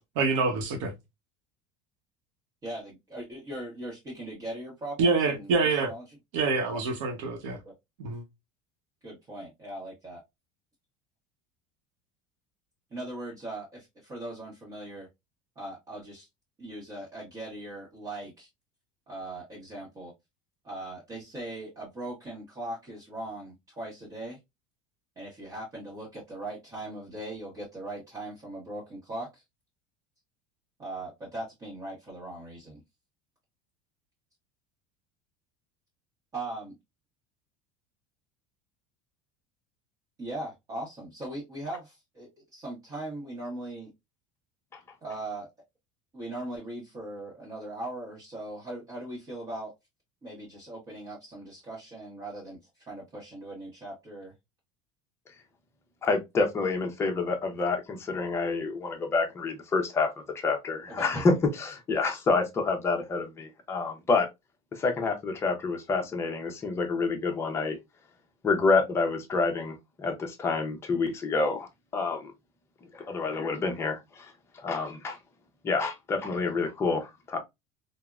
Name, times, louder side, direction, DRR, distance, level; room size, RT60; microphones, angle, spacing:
voice 1, 0.2-0.9 5.0-5.9 6.3-7.6 8.0-8.2, right 4 dB, 90° right, 0.8 m, -26 dB
voice 2, 2.6-5.5 5.9-6.0 6.7-6.8 7.5-7.7 9.0-10.2 12.9-15.1 15.6-16.3 16.6-18.5 19.1-20.1 20.6-24.4 25.2-29.4 30.8-32.8 36.3-36.7 40.2-43.9 45.0-45.5 46.1-49.7 50.2-54.3 61.0-61.4, right 1 dB, 25° right, 0.9 m, -39 dB
voice 3, 56.0-64.3 64.7-67.8 68.4-72.3 72.9-75.2 75.6-77.4, left 4 dB, 15° left, 0.5 m, -28 dB
3.4 x 2.0 x 2.3 m
cardioid pair, 160°, 15 cm